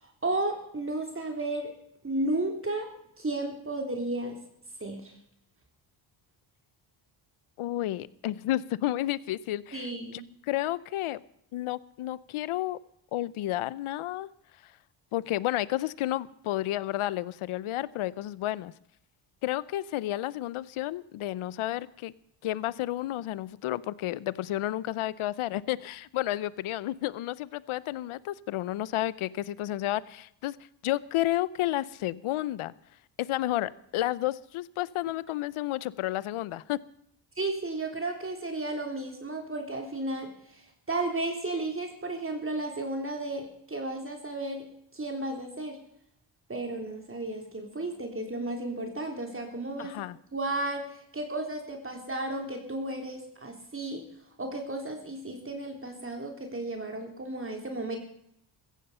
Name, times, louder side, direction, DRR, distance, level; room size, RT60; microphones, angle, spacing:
voice 1, 0.0-1.7 2.0-2.9 3.2-4.4 4.8-5.2 9.7-10.2 37.4-44.7 44.9-45.8 46.5-50.0 50.3-54.1 54.4-58.0, right 2 dB, 25° right, 3 dB, 3.5 m, -33 dB
voice 2, 7.6-10.2 10.5-11.2 11.5-12.8 13.1-14.3 15.1-18.7 19.4-22.1 22.4-30.6 30.8-32.7 33.2-36.8 49.8-50.2, left 15 dB, 80° left, 19 dB, 0.8 m, -31 dB
15.0 x 15.0 x 5.6 m, 0.71 s
cardioid pair, 80°, 49 cm